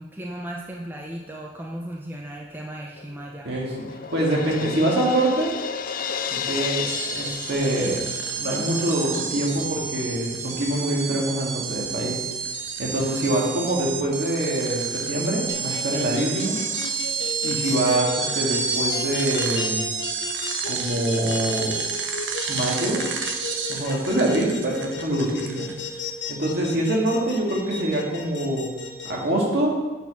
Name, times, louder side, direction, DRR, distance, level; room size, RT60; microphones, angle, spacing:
voice 1, 0.0-3.6, right 1 dB, 10° right, -1 dB, 0.6 m, -36 dB
Crash cymbal, 3.0-8.7, left 7 dB, 50° left, 0.4 m, -33 dB
voice 2, 3.4-3.7 4.1-5.6 6.3-8.0 8.3-12.2 12.8-16.6 17.4-19.9 20.6-21.8 22.5-23.0 23.7-25.7 26.3-28.7 29.0-29.8, right 1 dB, 60° right, -3 dB, 2.0 m, -25 dB
sound 1, 6.9-26.0, right 5 dB, 85° right, 0.9 m, -30 dB
sound 2, 15.5-29.1, left 6 dB, 75° left, 1.0 m, -34 dB
8.2 x 4.4 x 5.8 m, 1.2 s
head